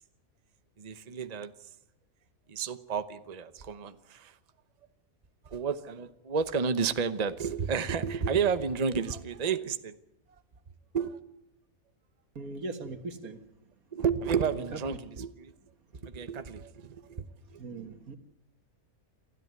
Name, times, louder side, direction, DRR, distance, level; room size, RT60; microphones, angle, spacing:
voice 1, 0.8-1.5 2.5-4.4 5.4-9.9 10.9-11.2 13.9-15.5 15.9-17.2 17.5-17.6, right 6 dB, 30° right, 11 dB, 0.9 m, -31 dB
voice 2, 12.4-13.4 14.5-14.6 17.6-18.2, right 3 dB, 85° right, 8 dB, 2.1 m, -39 dB
27.5 x 13.0 x 9.5 m, 0.83 s
omnidirectional pair, 1.5 m